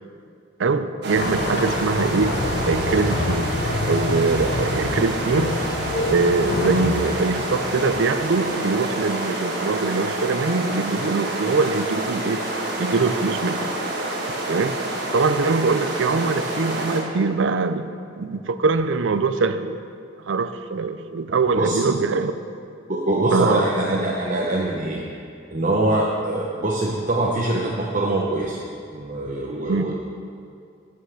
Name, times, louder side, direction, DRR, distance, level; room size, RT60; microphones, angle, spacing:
voice 1, 0.6-2.4 2.7-3.5 3.9-5.5 6.1-12.4 12.8-13.7 14.5-14.8 15.1-17.9 18.2-19.8 20.2-22.3 23.3-23.6 29.7-29.9, right 4 dB, 80° right, 11 dB, 0.5 m, -23 dB
sound 1, 1.0-17.0, right 1 dB, 60° right, 1.5 m, -28 dB
sound 2, 1.1-8.6, left 2 dB, 55° left, 0.5 m, -27 dB
voice 2, 22.9-25.0 25.5-28.6 28.9-29.9, right 2 dB, 40° right, -2 dB, 0.8 m, -23 dB
11.5 x 5.7 x 6.5 m, 2.4 s
head